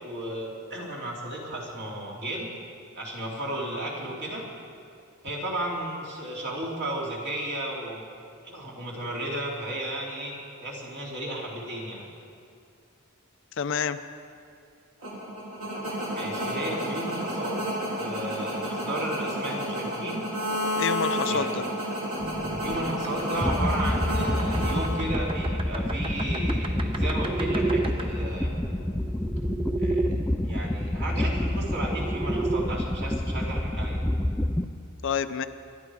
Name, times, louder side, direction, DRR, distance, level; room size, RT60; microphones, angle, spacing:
voice 1, 0.0-2.5 3.0-4.4 5.2-8.1 8.4-10.3 10.6-12.1 16.1-17.7 17.9-20.3 21.3-21.6 22.6-28.5 29.8-30.2 30.4-34.0, right 1 dB, 50° right, -3 dB, 3.2 m, -34 dB
voice 2, 13.6-14.0 20.8-21.6 35.0-35.5, left 6 dB, 60° left, 11 dB, 0.5 m, -28 dB
sound 1, 15.0-25.5, equal, 70° right, 3.0 m, -31 dB
sound 2, 22.2-30.1 31.4-32.6, right 3 dB, 25° right, 0.8 m, -33 dB
sound 3, 23.4-34.7, left 1 dB, 5° left, 0.4 m, -28 dB
23.0 x 11.5 x 4.8 m, 2.4 s
head